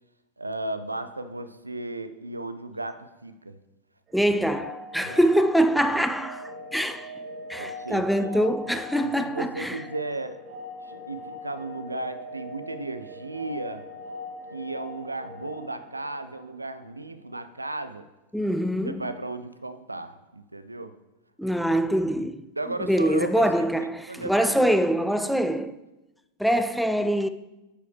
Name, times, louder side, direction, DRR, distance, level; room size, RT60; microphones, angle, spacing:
voice 1, 0.4-3.6 5.0-5.3 7.6-8.4 9.3-10.4 10.8-13.9 14.5-18.0 18.8-20.9 22.6-24.8, right 2 dB, 85° right, 0.4 m, -35 dB
voice 2, 4.1-7.1 7.5-9.8 18.3-18.9 21.4-22.4 22.8-25.7 26.4-27.3, equal, ahead, 0.3 m, -24 dB
sound 1, 4.1-16.9, left 2 dB, 30° right, 1.8 m, -41 dB
9.9 x 4.7 x 3.3 m
figure-of-eight pair, 90°, 0 cm